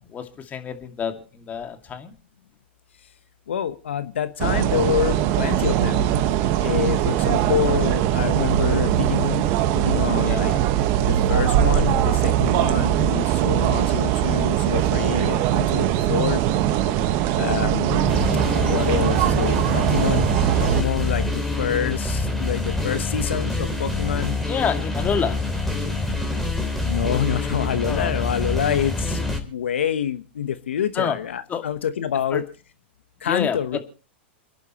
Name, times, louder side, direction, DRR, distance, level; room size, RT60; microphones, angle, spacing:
voice 1, 0.1-2.1 10.2-10.6 24.5-25.4 27.9-28.1 31.0-31.2 31.5-31.6 32.3-32.4 33.2-33.8, left 7 dB, 25° left, 6 dB, 2.3 m, -27 dB
voice 2, 3.5-6.1 6.5-10.5 11.1-16.4 17.4-18.0 18.5-20.3 20.6-24.4 26.8-32.4 33.2-33.8, left 9 dB, 80° left, 12 dB, 1.1 m, -27 dB
sound 1, 4.4-20.8, right 12 dB, 45° right, 1.4 m, -21 dB
sound 2, 17.9-29.4, left 3 dB, 5° left, 3.5 m, -26 dB
28.5 x 10.5 x 3.1 m, 0.35 s
hypercardioid pair, 110°, 6 cm